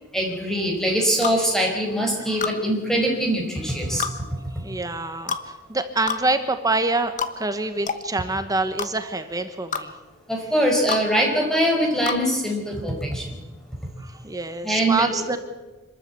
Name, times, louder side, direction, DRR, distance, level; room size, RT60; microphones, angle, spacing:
voice 1, 0.1-4.0 10.3-13.3 14.6-15.2, equal, ahead, 1 dB, 5.0 m, -23 dB
sound 1, 1.2-1.4 2.4-2.6 4.0-4.2 5.3-5.5 6.1-6.2 7.2-7.3 7.9-8.0 8.8-8.9 9.7-9.9 10.9-11.0 12.1-12.2, left 6 dB, 40° left, 1.2 m, -27 dB
voice 2, 4.6-9.9 14.0-15.4, right 2 dB, 15° right, 9 dB, 1.1 m, -26 dB
26.5 x 13.5 x 8.3 m, 1.2 s
head